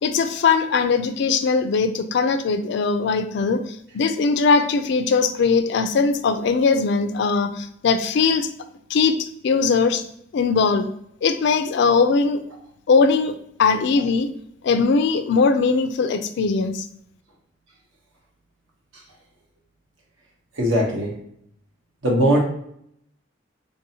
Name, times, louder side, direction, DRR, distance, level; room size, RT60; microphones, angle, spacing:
voice 1, 0.0-8.5 8.9-10.0 10.3-10.9 11.2-12.4 12.9-14.3 14.6-16.9, left 4 dB, 60° left, 10 dB, 0.3 m, -20 dB
voice 2, 20.6-21.1 22.0-22.4, equal, 70° right, -1 dB, 1.0 m, -19 dB
4.0 x 2.7 x 2.8 m, 0.72 s
head